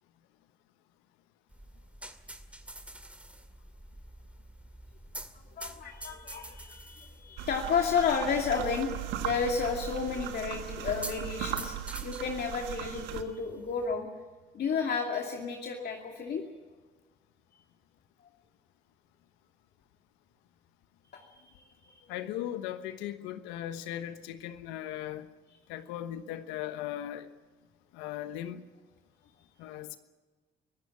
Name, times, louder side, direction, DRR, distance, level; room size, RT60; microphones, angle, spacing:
sound 1, 1.5-13.9, right 1 dB, 5° right, 2.2 m, -48 dB
voice 1, 5.3-11.8 12.0-14.1 14.5-16.5 21.1-22.2, left 5 dB, 60° left, 1 dB, 2.5 m, -32 dB
sound 2, 7.4-13.2, right 11 dB, 85° right, 1.4 m, -38 dB
voice 2, 22.1-25.3 25.7-27.3 27.9-28.6 29.6-30.0, left 12 dB, 90° left, 11 dB, 1.2 m, -38 dB
24.5 x 14.5 x 8.5 m, 1.3 s
supercardioid pair, 60°, 18 cm